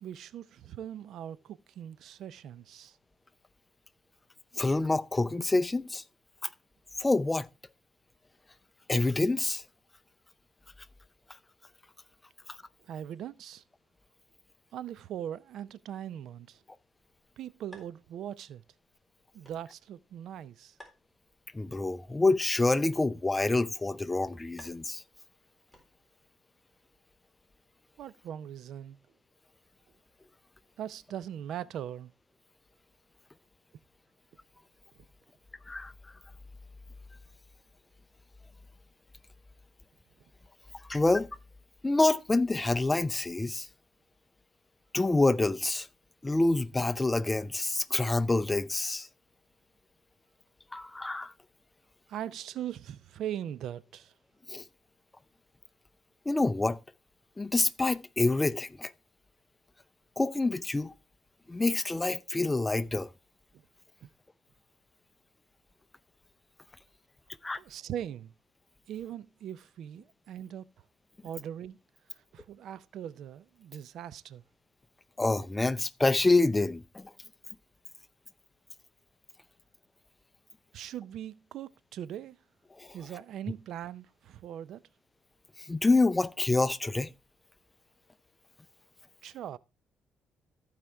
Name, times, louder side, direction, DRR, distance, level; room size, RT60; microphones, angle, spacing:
voice 1, 0.0-3.0 12.8-13.6 14.7-16.6 17.4-18.6 19.3-20.8 28.0-29.0 30.8-32.1 35.0-35.1 52.1-54.1 63.5-63.6 64.0-64.1 67.5-68.3 68.9-70.7 71.2-71.8 72.1-74.4 80.7-82.4 82.9-84.8 89.2-89.6, right 10 dB, 75° right, 0.4 m, -40 dB
voice 2, 4.6-6.0 7.0-7.5 8.9-9.6 21.5-25.0 35.7-35.9 40.9-41.3 41.8-43.7 44.9-45.9 46.2-49.1 50.7-51.3 54.5-54.6 56.3-56.8 57.4-58.9 60.2-60.9 61.5-63.1 67.4-67.6 75.2-77.1 82.8-82.9 85.6-87.1, left 2 dB, 20° left, 0.5 m, -27 dB
sound 1, 17.7-26.3, equal, 10° right, 3.8 m, -61 dB
15.0 x 5.0 x 3.3 m
cardioid pair, 90°, 0 cm